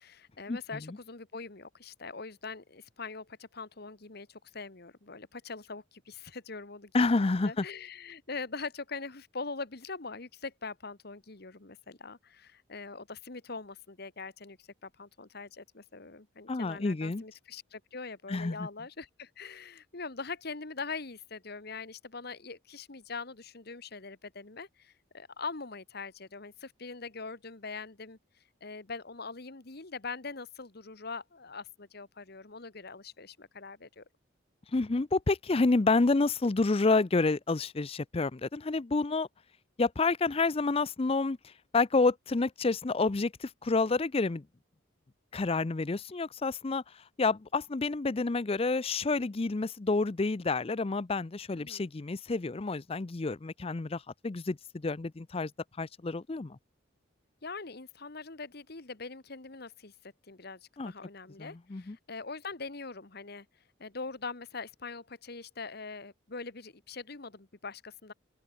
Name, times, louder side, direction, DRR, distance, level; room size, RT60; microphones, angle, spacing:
voice 1, 0.0-28.2 28.6-34.0 51.6-51.9 57.4-63.5 63.8-68.1, left 4 dB, 55° left, 1.5 m, -42 dB
voice 2, 6.9-7.6 16.5-17.2 18.3-18.7 34.7-39.3 39.8-41.4 41.7-44.4 45.3-46.8 47.2-55.5 55.8-56.6 60.8-60.9 61.4-62.0, left 3 dB, 30° left, 0.5 m, -29 dB
open air
head